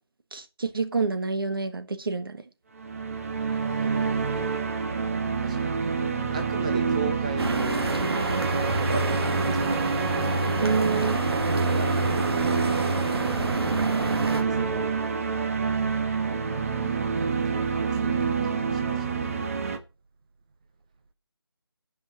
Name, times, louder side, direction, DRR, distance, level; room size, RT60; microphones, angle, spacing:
voice 1, 0.3-2.4 10.6-11.2, right 4 dB, 60° right, 1.3 m, -27 dB
sound 1, 2.8-19.8, right 4 dB, 35° right, 1.0 m, -27 dB
voice 2, 3.6-4.4 5.4-5.8 6.3-7.8 8.6-9.6 11.6-12.3 13.2-13.6 14.3-14.9 17.1-19.5, right 4 dB, 15° right, 0.5 m, -38 dB
sound 2, 7.4-14.4, right 2 dB, 75° right, 2.3 m, -29 dB
10.5 x 5.6 x 5.8 m
figure-of-eight pair, 160°, 13 cm